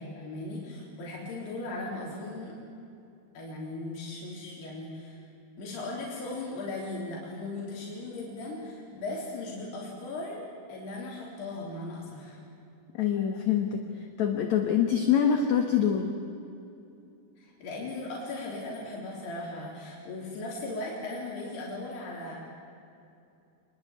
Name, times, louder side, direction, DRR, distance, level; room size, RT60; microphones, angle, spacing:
voice 1, 0.0-2.5 3.3-5.2 5.6-10.4 10.7-12.4 17.4-22.4, left 2 dB, 90° left, -4 dB, 5.6 m, -38 dB
voice 2, 13.0-16.2, left 8 dB, 55° left, 4 dB, 2.3 m, -25 dB
26.5 x 21.5 x 8.7 m, 2.7 s
omnidirectional pair, 4.5 m